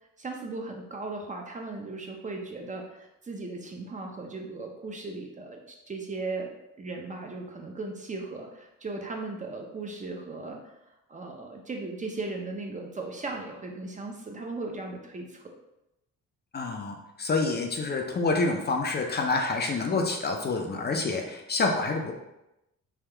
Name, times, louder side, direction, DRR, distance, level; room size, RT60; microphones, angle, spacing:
voice 1, 0.2-6.5 6.8-10.7 11.1-15.5, right 3 dB, 25° right, 1 dB, 0.5 m, -37 dB
voice 2, 16.5-22.1, left 3 dB, 35° left, 2 dB, 0.5 m, -27 dB
3.5 x 2.3 x 3.3 m, 0.90 s
cardioid pair, 90°, 30 cm